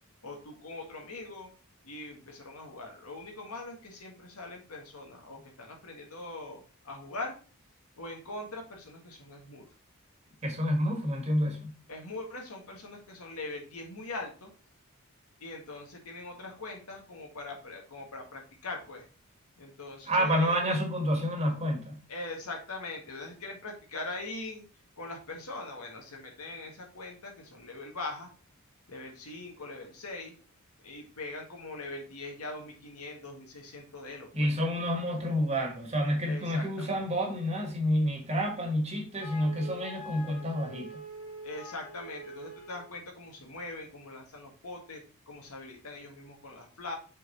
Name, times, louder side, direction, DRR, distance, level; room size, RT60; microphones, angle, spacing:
voice 1, 0.2-1.5 1.8-7.3 8.0-9.7 11.9-14.5 15.4-19.1 19.6-20.6 22.1-24.6 25.0-28.3 28.9-30.3 30.8-34.5 36.2-37.1 41.4-46.9, left 2 dB, 85° left, 1.8 m, -42 dB
voice 2, 10.4-11.7 20.1-22.0 34.3-41.0, equal, 30° right, 1.5 m, -29 dB
Wind instrument woodwind instrument, 39.2-42.9, right 1 dB, 70° left, 3.2 m, -45 dB
6.5 x 4.1 x 4.1 m
head